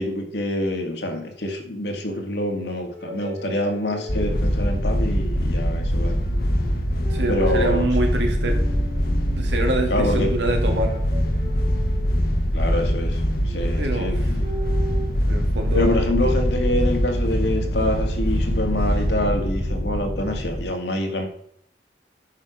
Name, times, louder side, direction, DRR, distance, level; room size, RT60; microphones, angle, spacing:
voice 1, 0.0-6.2 7.0-7.9 9.9-10.3 12.5-14.4 15.7-21.2, left 1 dB, 75° left, 3 dB, 2.1 m, -26 dB
sound 1, 2.9-4.7 6.0-6.7 7.0-7.9 8.3-9.5 10.5-12.3 13.4-15.1, equal, 55° right, 3.3 m, -38 dB
sound 2, 4.1-20.6, equal, 55° left, 1.4 m, -23 dB
voice 2, 7.1-8.6 9.3-10.9 13.8-14.1 15.3-16.0, right 2 dB, 85° right, 3 dB, 2.3 m, -25 dB
9.6 x 6.5 x 5.1 m, 0.69 s
head